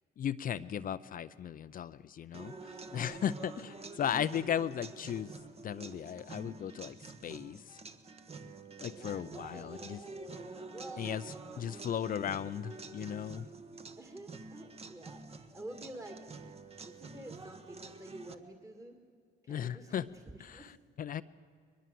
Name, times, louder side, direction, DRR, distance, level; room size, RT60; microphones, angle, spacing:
voice 1, 0.2-5.3 5.6-7.8 8.8-10.0 11.0-13.5 19.5-20.1 20.4-21.2, left 9 dB, 50° left, 13 dB, 0.6 m, -36 dB
sound 1, 2.3-18.4, right 3 dB, 35° right, 1.3 m, -48 dB
voice 2, 8.8-11.1 14.0-16.2 16.9-19.0 19.4-20.1 20.5-20.7, right 1 dB, 15° right, 4 dB, 2.0 m, -49 dB
22.0 x 21.5 x 7.7 m, 2.1 s
cardioid pair, 100°, 19 cm